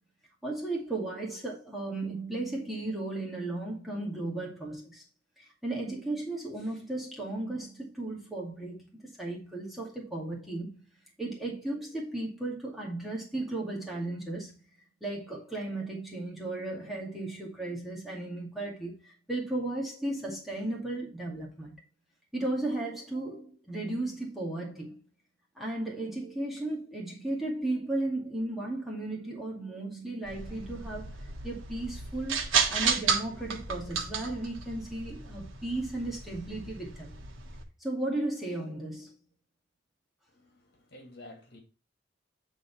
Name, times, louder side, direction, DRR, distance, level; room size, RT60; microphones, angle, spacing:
voice 1, 0.4-5.0 5.4-10.8 11.2-14.5 15.0-21.7 22.3-25.0 25.6-31.2 31.4-37.2 37.8-39.1, right 2 dB, ahead, 2.1 m, -35 dB
sound 1, 30.2-37.6, right 5 dB, 85° right, 1.5 m, -33 dB
voice 2, 40.3-41.6, left 1 dB, 50° left, 2.4 m, -51 dB
9.3 x 4.0 x 4.6 m
head